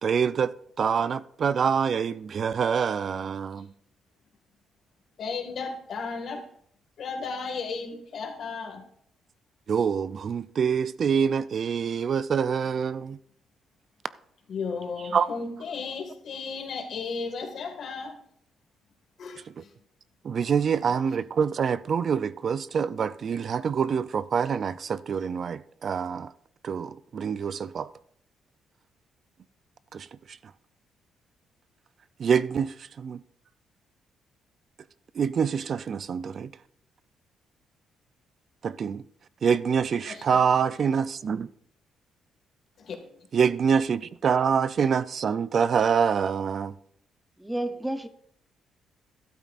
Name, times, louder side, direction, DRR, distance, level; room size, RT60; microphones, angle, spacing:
voice 1, 0.0-3.7 9.7-13.2 15.1-15.3 20.2-26.3 26.6-27.9 29.9-30.1 32.2-33.2 35.2-36.5 38.6-39.0 39.4-41.5 43.3-46.7, right 6 dB, 50° right, 0.4 m, -26 dB
voice 2, 5.2-6.5 7.0-8.8 14.5-18.2 19.2-19.7 20.9-21.0 40.0-40.4 42.8-43.1, left 4 dB, 60° left, 1.9 m, -35 dB
voice 3, 47.4-48.1, right 1 dB, 10° right, 0.7 m, -30 dB
12.5 x 12.5 x 2.5 m
cardioid pair, 90°, 0 cm